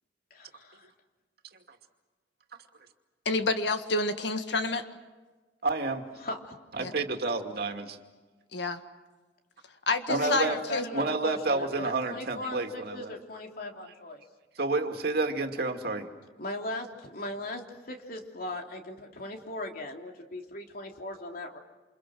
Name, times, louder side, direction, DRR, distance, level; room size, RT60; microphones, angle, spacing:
voice 1, 0.3-0.9 6.2-6.6 6.8-7.0 10.1-14.2 16.4-21.6, left 2 dB, 55° left, 2 dB, 3.2 m, -38 dB
voice 2, 3.3-4.9 6.8-6.9 8.5-8.8 9.9-10.9, left 2 dB, 75° left, 7 dB, 1.8 m, -28 dB
voice 3, 5.6-6.0 6.8-8.0 10.1-10.6 10.9-13.2 14.6-16.1, right 3 dB, 60° right, 4 dB, 2.4 m, -29 dB
28.5 x 28.0 x 6.3 m, 1.3 s
head